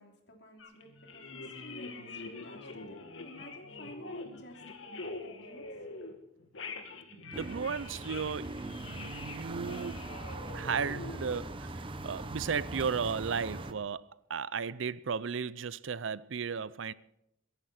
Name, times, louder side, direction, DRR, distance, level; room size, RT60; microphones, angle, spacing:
voice 1, 0.0-5.7, equal, 60° left, 3.1 m, -53 dB
sound 1, 0.6-6.1 6.4-11.4, left 3 dB, 85° left, 2.3 m, -45 dB
voice 2, 7.1-10.1 10.5-16.9, right 6 dB, 80° right, 0.6 m, -35 dB
sound 2, 7.3-13.7, right 2 dB, 25° right, 1.0 m, -41 dB
23.5 x 11.0 x 4.4 m
head